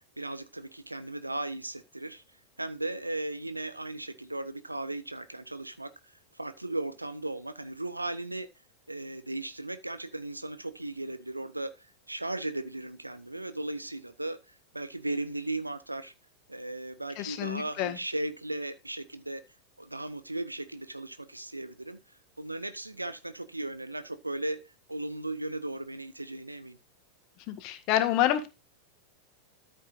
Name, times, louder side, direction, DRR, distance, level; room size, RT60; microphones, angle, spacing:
voice 1, 0.0-2.2 2.6-5.9 6.3-8.5 8.9-11.8 12.1-16.1 16.5-19.4 19.8-22.0 22.4-24.6 24.9-26.8, right 2 dB, 85° right, 1.1 m, -36 dB
voice 2, 17.2-18.0 27.5-28.5, left 12 dB, 40° left, 1.9 m, -28 dB
13.5 x 7.8 x 2.6 m
figure-of-eight pair, 90°, 0 cm